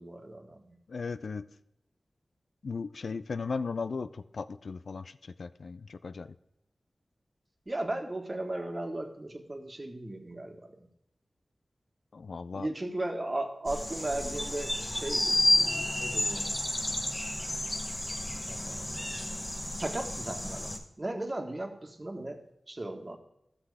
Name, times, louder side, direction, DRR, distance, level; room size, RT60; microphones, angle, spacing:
voice 1, 0.0-0.7 7.7-10.7 12.5-16.6 18.5-19.1 19.7-22.4 22.7-23.2, right 1 dB, 40° right, 4 dB, 1.6 m, -36 dB
voice 2, 0.9-1.4 2.6-5.1 5.4-6.3 12.1-12.7, left 4 dB, 80° left, 12 dB, 0.4 m, -36 dB
sound 1, 13.7-20.8, left 1 dB, 25° left, 1.3 m, -31 dB
12.5 x 5.9 x 4.9 m, 0.79 s
cardioid pair, 40°, 0 cm